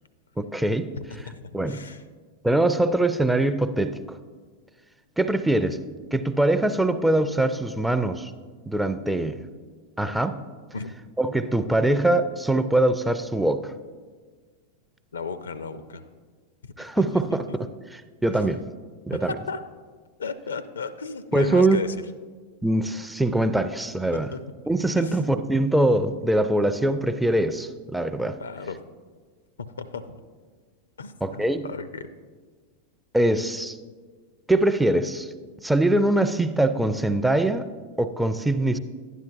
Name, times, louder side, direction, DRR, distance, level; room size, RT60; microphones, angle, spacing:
voice 1, 0.4-0.9 1.5-1.8 2.4-4.0 5.2-5.8 6.1-8.3 8.7-9.4 10.0-10.4 11.2-13.7 16.8-18.6 19.1-19.3 21.3-21.8 22.6-24.3 24.7-28.4 31.2-31.7 33.1-33.8 34.5-35.3 35.6-37.7 38.0-38.8, right 1 dB, 5° right, 10 dB, 0.4 m, -23 dB
voice 2, 1.0-2.0 10.7-10.9 15.1-16.1 17.0-17.2 17.5-17.6 18.3-18.4 19.1-19.6 20.2-22.0 24.3-24.4 25.0-25.2 28.4-28.8 29.6-30.2 31.0-32.1, left 4 dB, 70° left, 13 dB, 0.4 m, -35 dB
11.5 x 9.8 x 2.6 m, 1.5 s
figure-of-eight pair, 90°, 0 cm